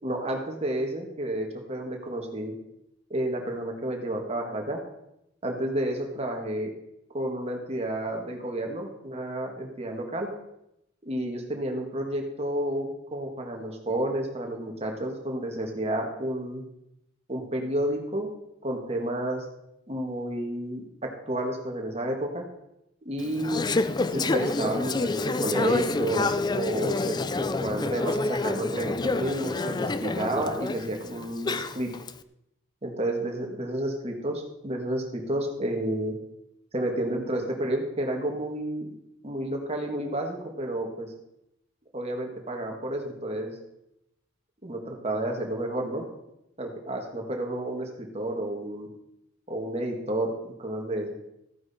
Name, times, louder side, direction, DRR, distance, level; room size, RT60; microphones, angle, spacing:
voice 1, 0.0-2.5 3.1-4.8 5.4-6.7 7.1-10.3 11.0-16.6 17.3-18.3 18.6-19.4 19.9-22.4 23.1-23.6 24.1-27.2 27.5-31.9 32.8-36.2 36.7-38.9 39.2-41.1 41.9-43.6 44.6-46.1 46.6-48.9 49.5-50.3 50.6-51.2, right 1 dB, 30° right, 2 dB, 2.0 m, -31 dB
Conversation / Chatter, 23.2-32.1, left 3 dB, 20° left, 0.4 m, -28 dB
14.5 x 9.4 x 4.4 m, 0.84 s
head